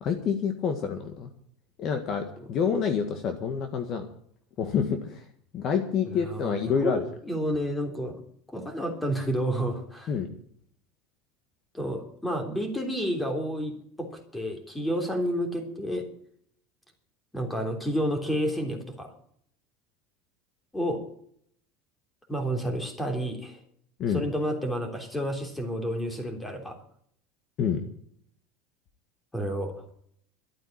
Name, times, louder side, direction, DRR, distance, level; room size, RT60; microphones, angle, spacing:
voice 1, 0.0-1.3 1.8-4.0 4.6-5.2 5.5-7.0 10.1-10.3 24.0-24.2 27.6-27.8, left 6 dB, 40° left, 6 dB, 1.7 m, -27 dB
voice 2, 6.1-8.2 8.5-10.1 11.7-16.0 17.3-19.1 20.7-21.0 22.3-23.6 24.1-26.8 29.3-29.7, equal, 5° left, 4 dB, 3.4 m, -30 dB
13.0 x 9.0 x 9.1 m, 0.64 s
supercardioid pair, 145°, 0 cm